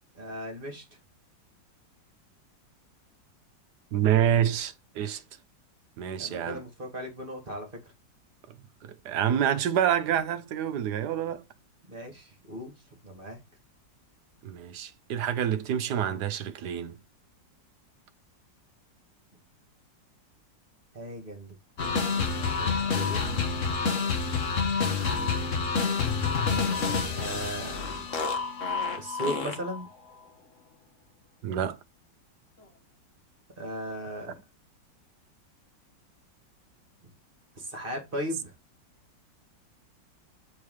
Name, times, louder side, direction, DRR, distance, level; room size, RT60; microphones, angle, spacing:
voice 1, 0.1-0.8 6.2-7.7 11.9-12.7 13.0-13.4 20.9-21.5 21.8-23.4 27.2-28.0 28.9-29.9 33.6-34.3 37.6-38.5, equal, 25° right, 2.4 m, -37 dB
voice 2, 3.9-5.2 6.0-6.6 8.8-11.4 14.4-17.0 25.0-25.4 31.4-31.8, right 9 dB, 65° right, 1.3 m, -27 dB
sound 1, 21.8-29.8, left 5 dB, 45° left, 1.5 m, -28 dB
7.0 x 4.8 x 4.9 m
omnidirectional pair, 2.0 m